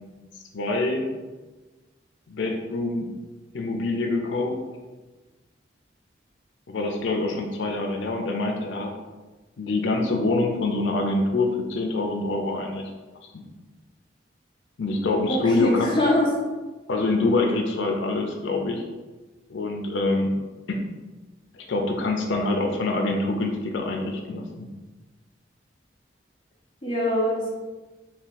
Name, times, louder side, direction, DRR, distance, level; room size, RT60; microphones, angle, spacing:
voice 1, 0.5-1.1 2.3-3.1 3.5-4.5 6.7-8.9 9.6-12.8 13.3-13.4 14.8-15.9 16.9-18.8 19.5-20.3 20.7-20.8 21.5-24.7, left 2 dB, 80° left, 2 dB, 0.5 m, -25 dB
voice 2, 15.3-16.3 26.8-27.5, left 1 dB, 25° left, -4 dB, 0.7 m, -23 dB
3.5 x 2.3 x 4.1 m, 1.2 s
head